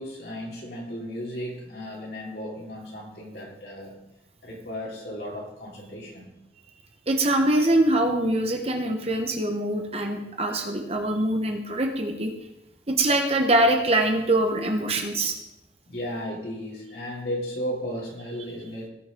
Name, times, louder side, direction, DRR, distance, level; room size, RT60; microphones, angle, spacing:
voice 1, 0.0-4.0 4.4-6.4 15.9-18.9, equal, 60° left, -3 dB, 3.3 m, -35 dB
voice 2, 7.1-12.3 12.9-15.4, right 1 dB, 35° right, 4 dB, 1.2 m, -23 dB
18.5 x 6.3 x 3.9 m, 0.89 s
head